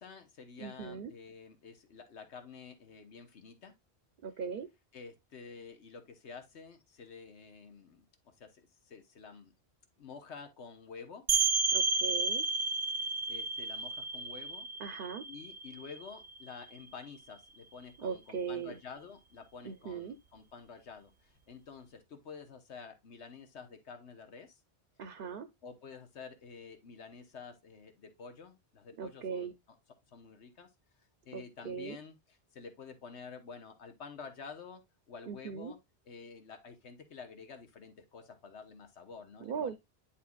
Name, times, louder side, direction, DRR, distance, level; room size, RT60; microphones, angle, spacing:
voice 1, 0.0-3.7 4.9-9.5 10.0-11.3 13.0-14.7 15.3-24.6 25.6-29.5 30.1-30.7 31.2-34.8 35.1-35.8 36.1-39.8, left 5 dB, 85° left, 1.4 m, -50 dB
voice 2, 0.6-1.1 4.2-4.7 11.7-12.4 14.8-15.2 18.0-18.8 19.6-20.2 25.0-25.5 29.0-29.5 31.3-32.0 35.3-35.7 39.4-39.8, right 6 dB, 55° right, 0.8 m, -39 dB
sound 1, 11.3-16.8, right 4 dB, 85° right, 1.1 m, -32 dB
10.0 x 4.4 x 2.3 m
omnidirectional pair, 1.1 m